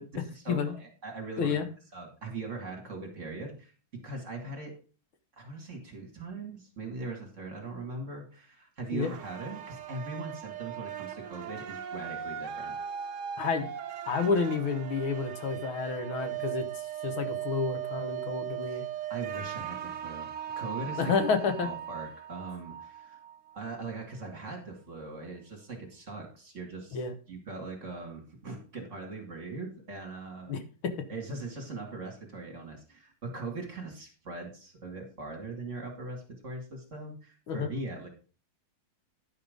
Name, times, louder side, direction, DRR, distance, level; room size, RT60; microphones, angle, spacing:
voice 1, 0.2-1.7 1.9-4.7 5.4-12.7 18.7-18.8 19.1-21.1 21.6-23.2 23.5-27.0 27.3-30.6 31.1-38.1, right 3 dB, 35° right, 2 dB, 2.4 m, -40 dB
sound 1, 9.0-24.0, right 9 dB, 75° right, 0.7 m, -38 dB
voice 2, 13.4-13.7 14.1-16.7 17.0-18.8 21.0-21.7 26.9-27.1 30.5-30.9 37.5-37.7, left 5 dB, 75° left, 7 dB, 2.1 m, -30 dB
11.0 x 5.7 x 5.1 m, 0.37 s
omnidirectional pair, 2.3 m